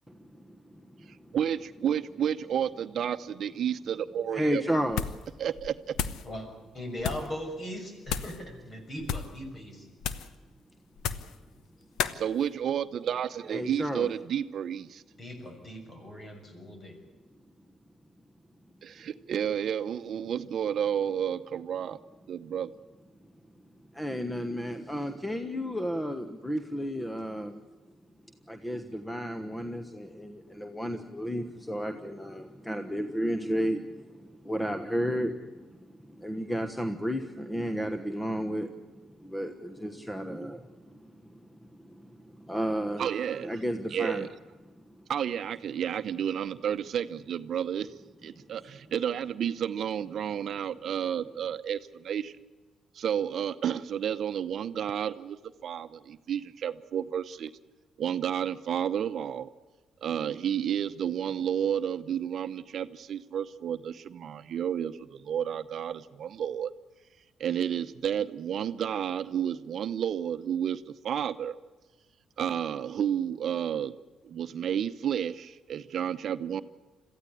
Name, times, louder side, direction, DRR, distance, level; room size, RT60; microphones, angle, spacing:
voice 1, 0.3-0.8 1.3-1.4 4.3-5.0 13.5-14.1 23.9-27.6 28.5-43.1 43.4-44.3 44.7-45.1, equal, 10° left, 7 dB, 1.3 m, -33 dB
voice 2, 1.3-4.6 5.4-5.9 12.1-15.0 18.8-22.0 22.3-22.7 43.0-43.5 43.9-44.3 45.1-47.9 48.2-52.3 52.9-57.5 58.0-59.5 60.0-66.7 67.4-71.6 72.4-74.0 74.2-76.6, right 9 dB, 60° right, 12 dB, 0.8 m, -31 dB
sound 1, 4.9-5.3 5.6-6.3 7.0-7.3 8.1-8.4 9.0-9.4 10.0-10.4 11.0-11.4 12.0-12.2, left 8 dB, 90° left, 1.0 m, -33 dB
voice 3, 6.7-9.9 15.2-17.0, equal, 40° left, 5 dB, 6.4 m, -39 dB
22.5 x 15.0 x 9.9 m, 1.3 s
cardioid pair, 90°, 0 cm